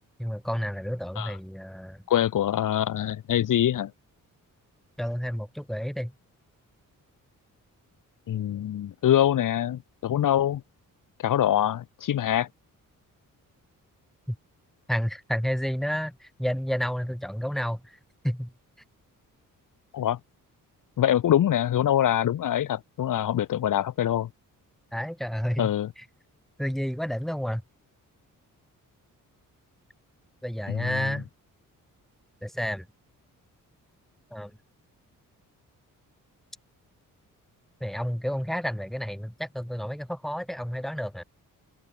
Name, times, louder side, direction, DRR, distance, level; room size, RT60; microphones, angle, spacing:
voice 1, 0.2-2.0 5.0-6.1 14.3-14.4 14.9-18.0 18.2-18.5 24.9-26.0 26.6-27.6 30.4-31.3 32.4-32.9 34.3-34.5 37.8-41.2, equal, ahead, 4.3 m, -30 dB
voice 2, 2.1-3.9 8.3-10.6 11.2-12.5 19.9-20.2 21.0-24.3 25.6-25.9 30.7-30.9, left 11 dB, 70° left, 1.9 m, -24 dB
open air
wide cardioid pair, 140°, 33 cm